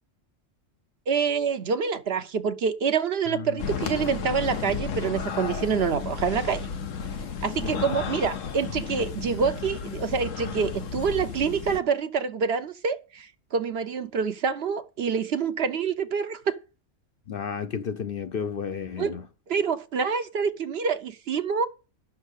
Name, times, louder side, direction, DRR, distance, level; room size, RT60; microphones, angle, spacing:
voice 1, 1.1-6.7 7.4-16.6 19.0-19.1 19.5-21.7, right 6 dB, 60° right, 0.9 m, -26 dB
voice 2, 3.3-3.6 7.6-7.7 17.3-19.2, left 6 dB, 55° left, 0.8 m, -32 dB
sound 1, 3.6-11.8, left 6 dB, 80° left, 1.3 m, -33 dB
12.0 x 6.4 x 6.5 m
omnidirectional pair, 1.3 m